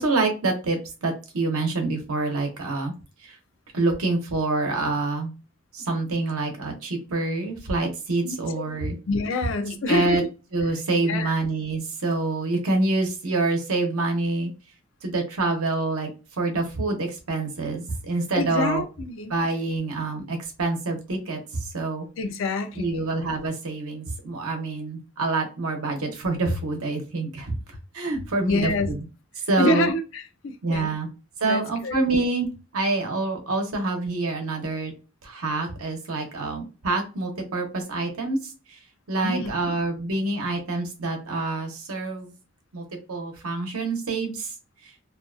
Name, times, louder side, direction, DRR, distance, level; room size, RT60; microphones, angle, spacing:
voice 1, 0.0-2.9 3.2-3.4 3.7-5.3 5.7-9.0 9.9-10.2 10.5-14.5 15.0-16.1 16.4-18.8 19.3-22.1 22.8-29.0 29.5-29.9 30.6-31.1 31.4-32.5 32.7-34.9 35.2-38.8 39.1-42.3 42.7-44.5, right 3 dB, 80° right, 0.8 m, -26 dB
voice 2, 8.2-8.7 9.1-10.3 11.0-11.4 18.3-19.3 22.2-23.1 28.4-28.9 29.6-31.0 31.4-32.0 39.2-39.7, left 2 dB, 60° left, 0.4 m, -27 dB
2.6 x 2.3 x 2.4 m
head